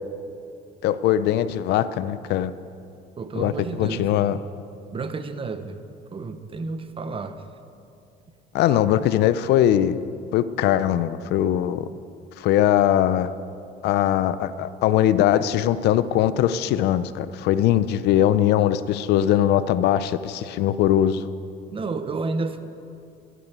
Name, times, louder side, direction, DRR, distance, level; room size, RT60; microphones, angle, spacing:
voice 1, 0.8-2.5 3.4-3.5 3.8-4.4 8.5-10.0 10.3-11.8 12.4-13.3 13.8-21.3, left 11 dB, 80° left, 14 dB, 0.6 m, -21 dB
voice 2, 3.2-4.5 4.9-5.8 6.1-7.4 21.7-22.6, right 4 dB, 30° right, 10 dB, 0.9 m, -31 dB
13.0 x 9.2 x 8.2 m, 2.5 s
cardioid pair, 110°, 17 cm